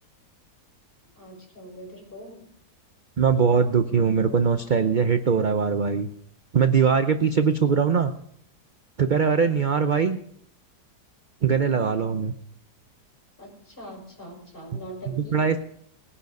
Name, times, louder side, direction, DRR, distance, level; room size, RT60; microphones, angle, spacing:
voice 1, 1.2-2.4 13.4-15.4, equal, 35° left, -1 dB, 5.9 m, -42 dB
voice 2, 3.2-6.1 6.5-8.1 9.0-10.2 11.4-12.4 15.3-15.6, right 6 dB, 55° right, 9 dB, 0.5 m, -21 dB
20.0 x 10.0 x 5.3 m, 0.70 s
omnidirectional pair, 1.7 m